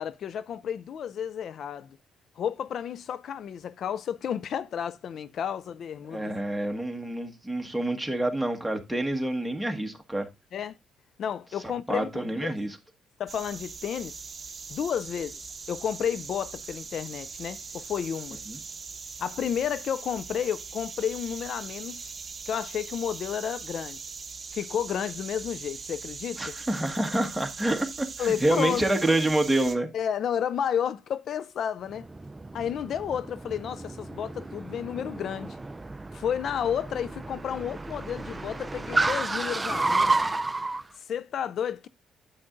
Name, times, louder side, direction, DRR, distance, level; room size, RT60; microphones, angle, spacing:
voice 1, 0.0-2.0 2.4-6.3 10.5-10.8 11.2-12.5 13.2-14.2 14.7-18.4 19.2-22.1 22.5-24.0 24.5-26.5 28.2-28.9 29.9-32.1 32.5-35.6 36.1-40.4 41.0-41.9, left 8 dB, 65° left, 0.3 m, -31 dB
voice 2, 6.1-10.3 11.6-12.8 18.5-18.6 26.4-29.9, right 1 dB, 5° right, 1.4 m, -27 dB
sound 1, 13.3-29.8, right 5 dB, 35° right, 0.9 m, -41 dB
Car, 31.9-40.8, right 3 dB, 20° right, 0.4 m, -31 dB
9.4 x 7.8 x 2.5 m
cardioid pair, 90°, 0 cm